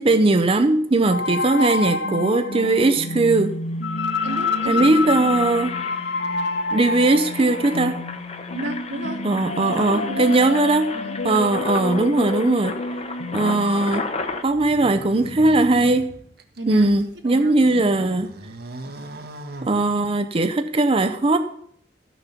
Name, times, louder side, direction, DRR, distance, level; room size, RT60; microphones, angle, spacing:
voice 1, 0.0-3.5 4.7-5.7 6.7-8.0 9.2-10.9 11.2-12.7 13.3-14.1 14.4-16.1 16.7-18.3 19.6-21.4, right 2 dB, 30° right, 7 dB, 0.6 m, -19 dB
sound 1, 1.1-13.8, left 3 dB, 65° left, 0.7 m, -28 dB
Engine, 2.7-2.8 3.0-3.3 3.7-14.4, left 3 dB, 35° left, 1.0 m, -34 dB
voice 2, 4.2-4.8 8.5-9.2 9.6-10.4 10.9-11.2 16.6-16.9 17.2-18.1, right 2 dB, 85° right, 3 dB, 2.0 m, -34 dB
sound 2, 14.5-17.1 17.6-20.4, right 1 dB, 60° right, 1.1 m, -39 dB
13.5 x 7.0 x 5.8 m, 0.67 s
head